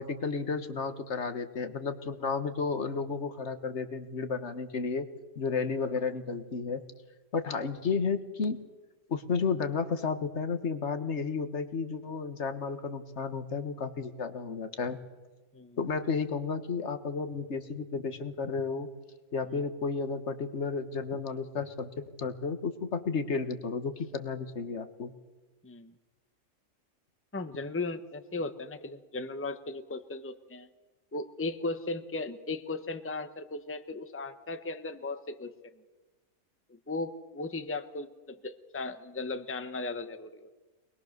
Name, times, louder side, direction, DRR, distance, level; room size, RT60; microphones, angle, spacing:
voice 1, 0.0-5.1 5.3-6.8 7.3-8.6 9.1-15.0 15.8-18.9 19.3-25.1, left 5 dB, 50° left, 10 dB, 1.7 m, -32 dB
voice 2, 25.6-25.9 27.3-30.7 31.1-35.5 36.9-40.7, left 3 dB, 10° left, 10 dB, 1.0 m, -37 dB
24.5 x 21.0 x 6.7 m, 1.2 s
omnidirectional pair, 1.5 m